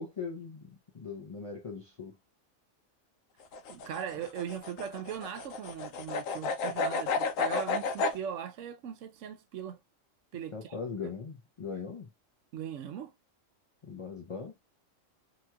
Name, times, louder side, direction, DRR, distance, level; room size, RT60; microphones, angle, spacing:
voice 1, 0.0-2.2 10.5-12.1 13.8-14.5, left 5 dB, 50° left, 0.4 m, -40 dB
sound 1, 3.4-8.2, left 4 dB, 80° left, 1.0 m, -32 dB
voice 2, 3.7-9.8 10.3-10.7 12.5-13.1, right 8 dB, 75° right, 0.9 m, -39 dB
2.9 x 2.9 x 2.2 m
omnidirectional pair, 1.4 m